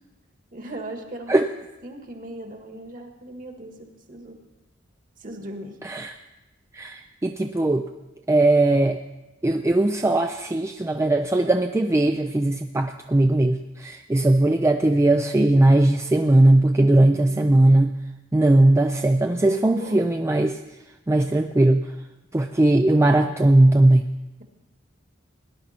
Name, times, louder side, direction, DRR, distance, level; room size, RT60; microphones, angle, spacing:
voice 1, 0.5-1.4 1.8-4.4 5.2-5.8 17.0-17.7 19.4-20.1, right 1 dB, 45° right, 4 dB, 1.7 m, -38 dB
voice 2, 5.8-6.1 6.7-7.9 8.3-9.0 9.4-17.9 18.3-20.6 21.1-21.9 22.3-24.0, right 1 dB, 15° right, 6 dB, 0.4 m, -19 dB
18.5 x 10.5 x 4.3 m, 1.0 s
head